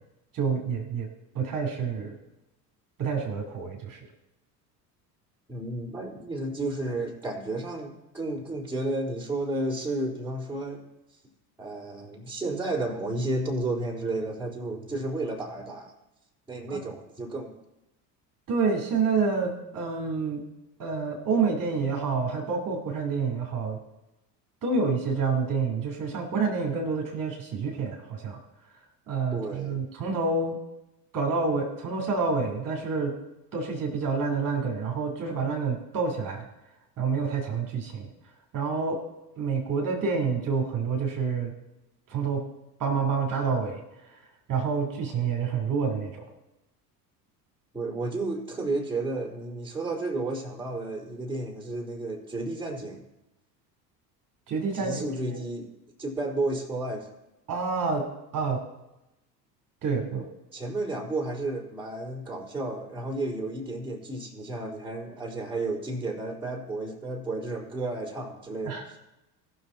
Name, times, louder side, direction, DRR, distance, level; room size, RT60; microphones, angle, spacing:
voice 1, 0.3-1.1 1.3-2.1 3.0-4.0 16.7-16.8 18.5-20.4 20.8-23.8 24.6-28.4 29.1-30.6 31.1-33.1 33.5-36.4 37.0-38.1 38.5-39.0 39.4-41.5 42.1-42.4 42.8-43.8 44.5-46.2 54.5-55.4 57.5-58.0 58.3-58.6 59.8-60.3 68.6-69.0, right 5 dB, 40° right, 1 dB, 2.7 m, -28 dB
voice 2, 5.5-10.8 11.6-15.9 16.5-17.5 29.3-29.8 47.7-53.0 54.7-55.7 56.0-57.1 60.5-69.0, right 2 dB, 5° right, -9 dB, 4.1 m, -32 dB
19.0 x 6.6 x 4.5 m, 0.94 s
hypercardioid pair, 70°, 50 cm